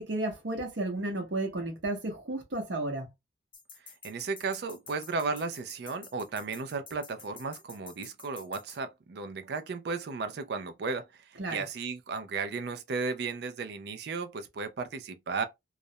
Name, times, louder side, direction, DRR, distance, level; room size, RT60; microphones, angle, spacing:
voice 1, 0.0-3.1 11.4-11.6, right 2 dB, 80° right, 0.8 m, -33 dB
sound 1, 3.5-8.8, left 5 dB, 25° left, 0.6 m, -50 dB
voice 2, 4.0-15.4, right 4 dB, 60° right, 0.4 m, -35 dB
2.4 x 2.0 x 2.7 m
head